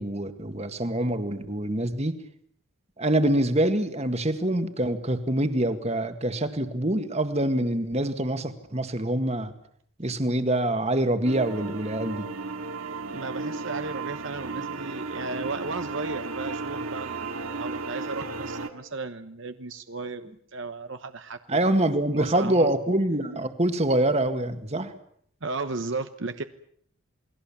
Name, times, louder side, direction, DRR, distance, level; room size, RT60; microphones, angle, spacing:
voice 1, 0.0-2.1 3.0-9.5 10.0-12.3 21.5-24.9, right 1 dB, 30° right, 9 dB, 1.9 m, -25 dB
sound 1, 11.2-18.7, right 3 dB, 80° right, 2.3 m, -34 dB
voice 2, 13.0-21.6 22.1-22.7 25.4-26.4, right 3 dB, 60° right, 9 dB, 1.1 m, -35 dB
28.5 x 21.0 x 7.3 m, 0.66 s
head